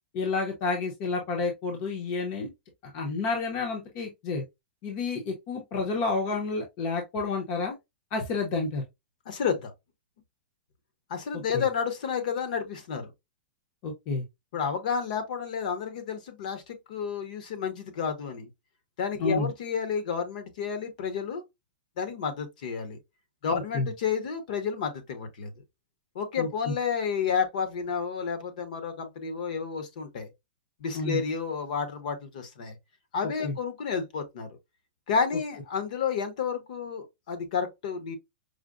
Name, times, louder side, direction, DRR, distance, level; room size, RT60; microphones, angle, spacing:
voice 1, 0.1-2.5 2.8-4.4 4.8-7.7 8.1-8.8 11.5-11.6 13.8-14.2 19.2-19.5 23.7-23.9 26.4-26.5 30.9-31.2 33.4-33.5, left 3 dB, 25° left, 0.7 m, -30 dB
voice 2, 9.3-9.7 11.1-13.1 14.5-18.5 19.0-21.4 22.0-23.0 23.4-25.5 26.1-30.3 30.8-32.8 33.1-34.5 35.1-38.2, left 6 dB, 50° left, 0.9 m, -31 dB
4.9 x 2.0 x 2.4 m
supercardioid pair, 175°, 5 cm